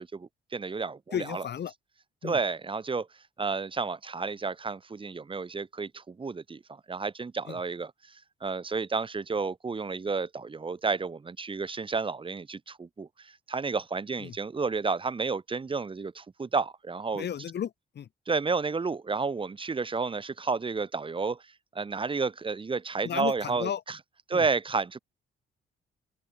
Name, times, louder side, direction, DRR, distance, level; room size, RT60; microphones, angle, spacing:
voice 1, 0.0-1.4 2.2-3.1 3.4-17.3 18.3-21.4 21.7-24.0 24.3-25.0, right 4 dB, 25° right, 1.1 m, -31 dB
voice 2, 1.1-1.7 2.2-2.4 7.5-7.6 14.2-14.3 17.1-18.1 23.0-23.8 24.3-24.4, left 9 dB, 60° left, 2.9 m, -34 dB
open air
cardioid pair, 90°, 20 cm